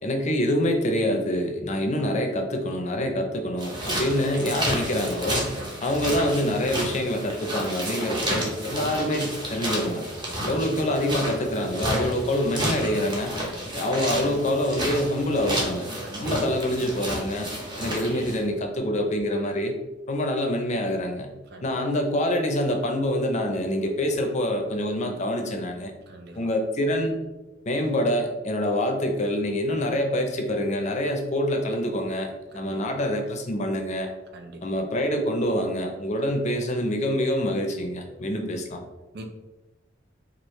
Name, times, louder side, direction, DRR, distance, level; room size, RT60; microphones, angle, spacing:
voice 1, 0.0-5.5 5.8-10.1 10.5-13.3 13.7-15.9 16.2-17.5 17.8-19.7 20.1-21.3 21.6-25.9 26.3-27.1 27.7-34.1 34.6-38.8, left 1 dB, 40° left, 4 dB, 0.5 m, -26 dB
sound 1, 3.6-18.4, equal, 25° right, 0.8 m, -31 dB
voice 2, 16.0-16.4 21.5-21.6 26.1-26.4 32.5-33.0 34.3-34.6 39.1-39.3, right 1 dB, 60° right, 5 dB, 0.6 m, -42 dB
4.7 x 2.4 x 3.1 m, 1.1 s
head